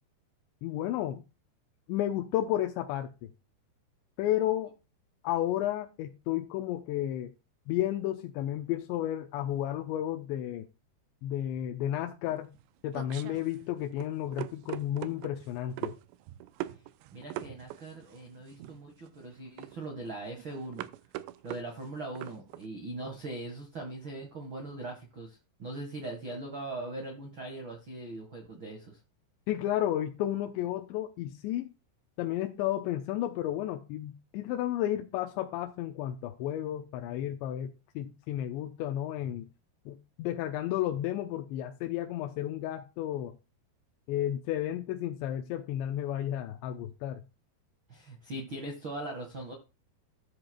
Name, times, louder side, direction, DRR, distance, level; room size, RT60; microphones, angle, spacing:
voice 1, 0.6-1.2 1.9-3.3 4.2-4.7 5.2-7.3 7.7-10.7 11.2-12.5 12.8-15.9 29.5-31.7 32.2-39.5 39.9-43.4 44.1-47.2, left 12 dB, 85° left, 3.0 m, -32 dB
sound 1, 12.3-22.7, right 14 dB, 90° right, 2.8 m, -42 dB
voice 2, 17.1-20.9 21.4-29.0 47.9-49.5, right 2 dB, 70° right, 1.1 m, -40 dB
13.5 x 7.7 x 2.3 m
omnidirectional pair, 5.0 m